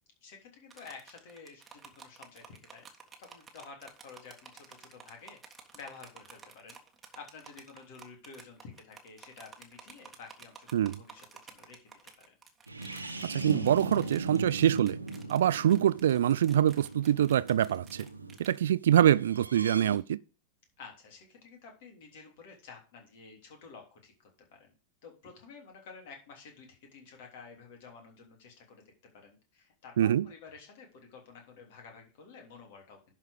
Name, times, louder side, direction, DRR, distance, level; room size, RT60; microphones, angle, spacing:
voice 1, 0.2-2.9 3.2-6.8 7.1-12.3 20.8-24.7 25.0-33.0, left 5 dB, 50° left, 3.2 m, -51 dB
sound 1, 0.7-18.6, right 5 dB, 20° right, 1.6 m, -53 dB
sound 2, 12.7-18.4 19.2-20.0, right 2 dB, 80° right, 1.0 m, -38 dB
voice 2, 13.2-15.0 15.3-18.1 18.4-20.2 30.0-30.3, right 10 dB, 60° right, 0.4 m, -25 dB
11.0 x 4.7 x 5.0 m
figure-of-eight pair, 90°, 0 cm